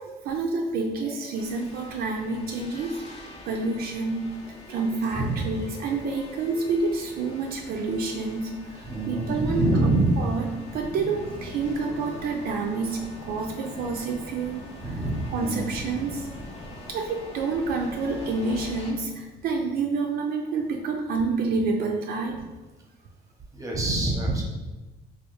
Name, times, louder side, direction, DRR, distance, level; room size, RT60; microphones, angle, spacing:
voice 1, 0.0-3.0 3.5-4.3 4.7-9.7 10.2-14.7 15.3-16.4 16.9-22.4, right 4 dB, 65° right, 2 dB, 0.4 m, -28 dB
sound 1, 1.3-18.9, left 1 dB, 40° left, 0.7 m, -42 dB
voice 2, 5.1-5.5 8.8-10.1 14.8-15.8 23.5-24.4, right 2 dB, 20° right, -1 dB, 0.7 m, -25 dB
3.0 x 2.4 x 3.0 m, 1.1 s
cardioid pair, 110°, 17 cm